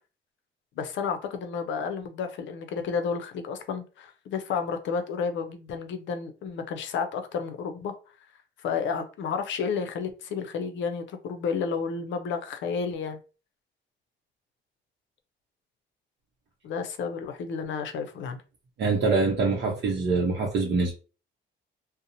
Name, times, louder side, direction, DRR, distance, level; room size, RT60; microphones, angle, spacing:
voice 1, 0.8-7.9 8.6-13.2 16.6-18.4, left 5 dB, 70° left, 0.5 m, -31 dB
voice 2, 18.8-20.9, right 3 dB, 60° right, 0.6 m, -24 dB
2.7 x 2.0 x 2.5 m
cardioid pair, 90°, 20 cm